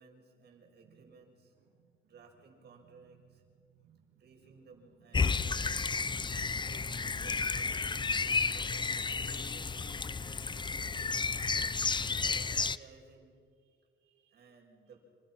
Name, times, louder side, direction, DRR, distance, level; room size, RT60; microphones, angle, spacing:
voice 1, 0.0-1.5 2.0-3.4 4.2-5.8 6.6-9.9 11.6-13.4 14.3-15.0, right 4 dB, 55° right, 2 dB, 6.6 m, -58 dB
voice 2, 0.8-1.2 1.6-2.1 3.1-4.3 4.8-6.4 9.4-10.3 12.0-12.2 13.6-14.5, right 6 dB, 70° right, 1 dB, 2.4 m, -63 dB
sound 1, 5.1-12.8, left 4 dB, 25° left, 0.7 m, -32 dB
27.5 x 27.0 x 6.1 m, 2.1 s
cardioid pair, 90°, 20 cm